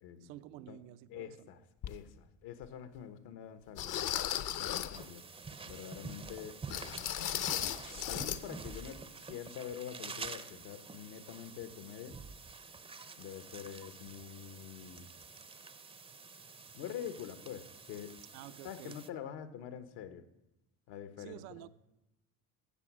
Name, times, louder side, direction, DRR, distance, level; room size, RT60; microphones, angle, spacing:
voice 1, 0.2-1.3 18.3-18.9 21.2-21.7, right 14 dB, 85° right, 0.7 m, -50 dB
voice 2, 1.1-4.2 4.6-5.2 5.6-6.6 7.7-7.8 8.1-12.2 13.2-15.1 16.7-18.2 18.6-20.2 20.9-21.7, left 9 dB, 70° left, 1.2 m, -46 dB
sound 1, 1.8-2.0 2.6-2.7 3.8-5.0 6.7-8.4 8.7-8.9 9.3-9.4, left 11 dB, 50° left, 0.8 m, -36 dB
sound 2, 4.9-19.1, right 4 dB, 15° right, 0.5 m, -48 dB
15.5 x 6.2 x 6.1 m
supercardioid pair, 105°, 40 cm